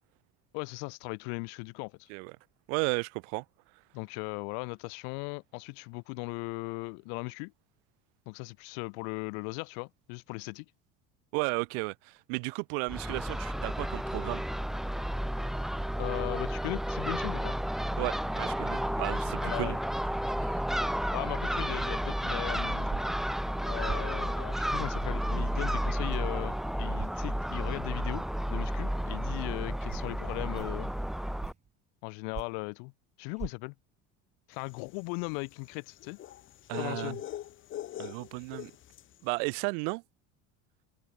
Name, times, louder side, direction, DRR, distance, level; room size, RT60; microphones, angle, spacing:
voice 1, 0.5-2.1 3.9-7.5 8.3-10.6 16.0-17.6 19.4-19.8 21.1-23.1 23.6-30.9 32.0-32.9 33.2-33.7 34.5-36.2 36.7-37.2, left 40 dB or more, 75° left, 1.4 m, -38 dB
voice 2, 2.7-3.4 11.3-14.4 18.0-19.8 20.4-20.5 36.7-37.2 38.0-38.7 39.2-40.0, right 40 dB or more, 75° right, 2.1 m, -34 dB
Crow / Gull seagull, 12.9-31.5, equal, ahead, 0.7 m, -32 dB
sound 1, 22.9-23.2 23.9-24.1 25.0-25.2 26.1-26.2 27.0-27.2 28.1-28.3 29.1-29.2 29.9-30.1 30.5-30.8 31.4-31.7 32.3-32.6 33.4-33.5, right 6 dB, 20° right, 1.1 m, -39 dB
sound 2, 34.7-39.2, left 12 dB, 40° left, 1.1 m, -42 dB
supercardioid pair, 125°, 32 cm